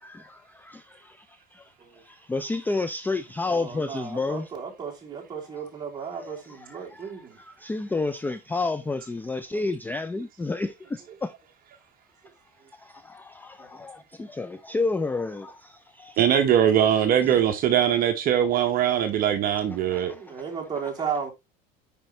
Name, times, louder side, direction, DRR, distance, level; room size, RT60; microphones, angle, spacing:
voice 1, 0.0-4.5 6.2-6.4 6.7-7.1 7.4-11.3 12.7-16.2 17.2-17.4 19.7-20.4, left 3 dB, 10° left, 0.4 m, -31 dB
voice 2, 3.5-7.4 13.6-13.9 20.1-21.3, right 6 dB, 20° right, 2.7 m, -35 dB
voice 3, 16.2-20.1, right 9 dB, 45° right, 0.9 m, -21 dB
8.8 x 5.3 x 3.1 m
cardioid pair, 125°, 20 cm